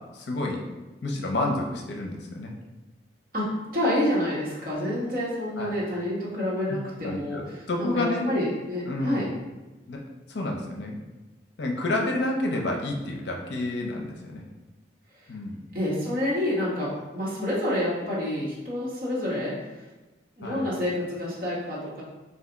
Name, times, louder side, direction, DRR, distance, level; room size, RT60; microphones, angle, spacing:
voice 1, 0.1-0.6 1.0-2.5 5.6-5.7 7.0-8.3 8.9-9.3 9.9-10.0 10.3-10.9 11.6-14.4 15.3-15.6 20.4-20.7, left 2 dB, 70° left, 0 dB, 0.6 m, -29 dB
voice 2, 3.3-9.3 15.7-19.8 20.4-22.0, left 1 dB, 50° right, -7 dB, 1.3 m, -28 dB
3.4 x 2.6 x 3.9 m, 1.1 s
head